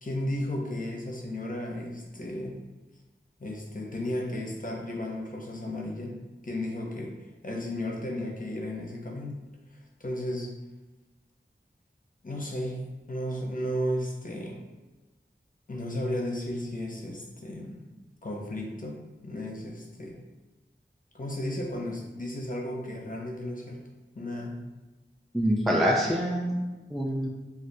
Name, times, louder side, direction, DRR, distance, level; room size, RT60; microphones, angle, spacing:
voice 1, 0.0-2.6 3.4-6.2 6.4-9.4 10.0-10.5 12.2-12.8 13.1-14.6 15.7-17.8 18.2-20.1 21.1-23.8 24.1-24.6, left 1 dB, 40° left, -1 dB, 0.6 m, -34 dB
voice 2, 25.3-27.3, equal, ahead, -3 dB, 0.4 m, -26 dB
3.3 x 2.4 x 2.6 m, 1.2 s
wide cardioid pair, 40°, 21 cm